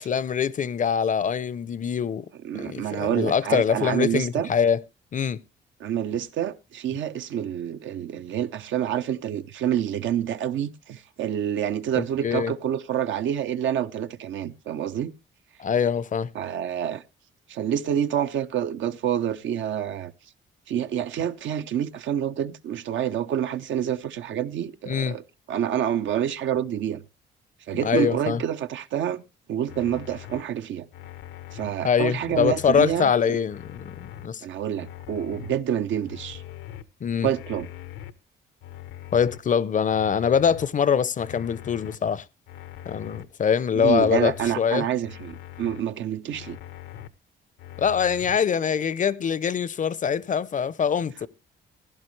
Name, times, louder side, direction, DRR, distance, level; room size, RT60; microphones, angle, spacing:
voice 1, 0.0-2.3 2.5-4.8 5.1-5.4 12.0-12.5 15.6-16.3 24.9-25.2 27.8-28.4 31.8-34.4 37.0-37.3 39.1-42.2 42.9-44.9 47.8-51.3, left 7 dB, 40° left, 0.5 m, -24 dB
voice 2, 2.4-4.5 5.8-15.1 16.3-17.0 17.5-20.1 20.7-25.2 25.5-27.0 27.7-29.2 29.5-30.9 31.5-33.4 34.4-36.4 37.2-37.7 43.7-46.6, right 10 dB, 70° right, 0.7 m, -27 dB
sound 1, 29.7-30.4 30.9-31.7 32.2-33.0 33.5-34.3 34.8-35.5 36.0-36.8 37.3-38.1 38.6-39.4 39.9-40.7 41.2-42.0 42.5-43.2 43.7-44.5 45.0-45.8 46.3-47.1 47.6-48.4, left 12 dB, 85° left, 0.8 m, -41 dB
16.0 x 10.5 x 3.1 m
cardioid pair, 90°, 20 cm